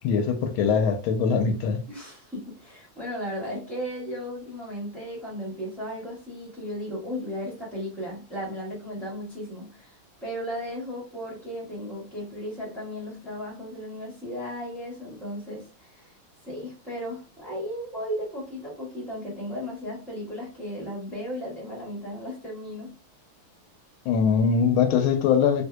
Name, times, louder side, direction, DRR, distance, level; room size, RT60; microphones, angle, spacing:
voice 1, 0.0-1.8 24.0-25.7, left 6 dB, 85° left, 1.4 m, -22 dB
voice 2, 1.9-16.1 16.4-22.9, equal, ahead, 1.2 m, -35 dB
3.4 x 3.0 x 2.2 m
omnidirectional pair, 2.3 m